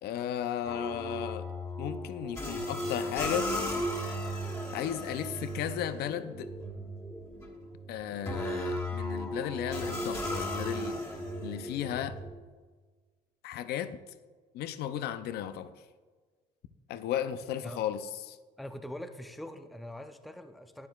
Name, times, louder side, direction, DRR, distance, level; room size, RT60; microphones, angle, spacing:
voice 1, 0.0-1.5 1.8-3.5 4.7-6.5 7.9-11.0 11.4-12.2 13.4-14.0 14.5-15.7 16.9-18.4, left 10 dB, 70° left, 12 dB, 0.5 m, -35 dB
sound 1, 0.6-12.3, equal, 15° left, 1.7 m, -36 dB
voice 2, 18.6-20.9, left 1 dB, ahead, 8 dB, 0.5 m, -43 dB
12.0 x 9.6 x 2.3 m, 1.4 s
cardioid pair, 110°, 17 cm